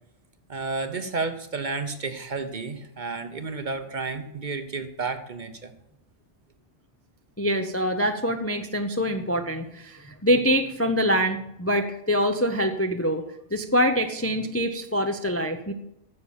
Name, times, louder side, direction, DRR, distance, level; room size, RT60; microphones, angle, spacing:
voice 1, 0.5-5.7, right 4 dB, 45° right, 9 dB, 0.9 m, -31 dB
voice 2, 7.4-13.2 13.5-15.7, equal, 15° left, 6 dB, 0.5 m, -25 dB
9.6 x 6.8 x 7.0 m, 0.82 s
omnidirectional pair, 1.2 m